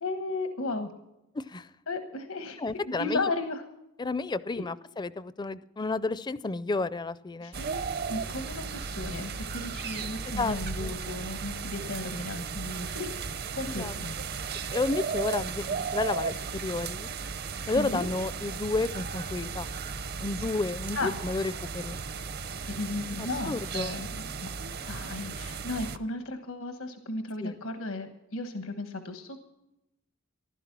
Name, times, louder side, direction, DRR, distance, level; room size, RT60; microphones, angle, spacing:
voice 1, 0.0-0.9 1.9-2.6 2.8-3.6 4.5-4.6 7.4-7.8 8.1-13.1 13.5-14.2 17.8-18.1 20.9-21.2 22.7-24.5 24.9-29.5, left 2 dB, 85° left, 7 dB, 1.3 m, -35 dB
voice 2, 1.3-1.7 2.6-3.3 4.0-7.6 10.2-11.0 13.6-14.0 14.7-17.1 17.7-19.7 20.2-22.0 23.2-24.0 27.4-27.6, left 3 dB, 20° left, 16 dB, 0.4 m, -31 dB
sound 1, 7.5-26.0, right 5 dB, 50° right, 0.7 m, -35 dB
15.5 x 12.0 x 6.0 m, 0.89 s
head